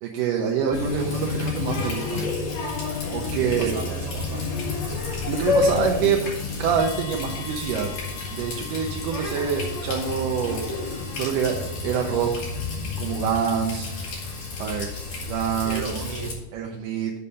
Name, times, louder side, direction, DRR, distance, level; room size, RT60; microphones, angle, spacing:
voice 1, 0.0-2.3 3.1-3.7 4.8-4.9 5.2-6.3 6.6-7.9 8.3-12.3 13.0-13.9 14.6-16.1 16.5-17.1, right 7 dB, 80° right, 1 dB, 2.3 m, -26 dB
Water tap faucet, 0.7-16.3, left 4 dB, 55° left, 3.0 m, -30 dB
voice 2, 3.3-4.5 9.0-9.1 15.6-16.4, right 5 dB, 60° right, 2 dB, 1.6 m, -35 dB
sound 1, 6.8-15.5, left 7 dB, 80° left, 2.4 m, -46 dB
7.1 x 5.6 x 6.3 m, 0.97 s
omnidirectional pair, 3.8 m